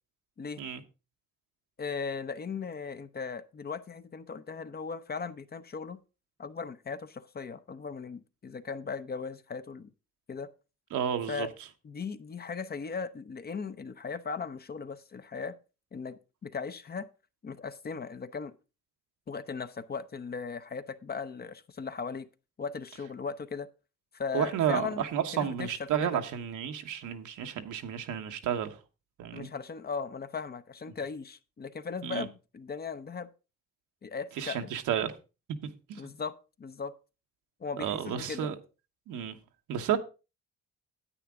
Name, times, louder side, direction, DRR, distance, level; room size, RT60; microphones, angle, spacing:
voice 1, 1.8-6.0 6.4-9.9 10.3-10.5 11.3-11.5 11.8-15.6 15.9-17.1 17.4-18.5 19.3-22.3 22.6-23.7 24.1-25.0 25.3-26.2 29.3-33.3 34.0-34.7 36.0-36.9 37.6-38.5, left 5 dB, 30° left, 0.7 m, -38 dB
voice 2, 10.9-11.5 24.3-28.8 29.2-29.5 32.0-32.3 34.4-35.1 35.6-36.0 37.8-38.5 39.1-39.4 39.7-40.0, right 9 dB, 80° right, 1.2 m, -31 dB
10.0 x 8.6 x 3.6 m
cardioid pair, 90°, 30 cm